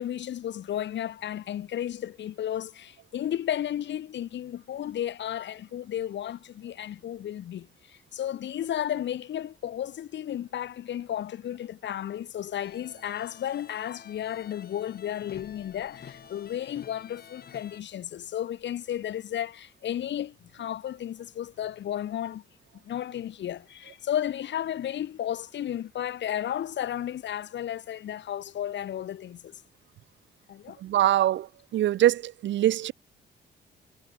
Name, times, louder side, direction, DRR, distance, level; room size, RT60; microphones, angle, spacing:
voice 1, 0.0-22.4 22.8-29.6 30.5-30.8, left 11 dB, 65° left, 1.6 m, -33 dB
sound 1, 12.6-17.8, left 8 dB, 50° left, 2.3 m, -49 dB
voice 2, 30.8-31.5 31.7-32.9, right 13 dB, 70° right, 0.7 m, -23 dB
cardioid pair, 90°, 20 cm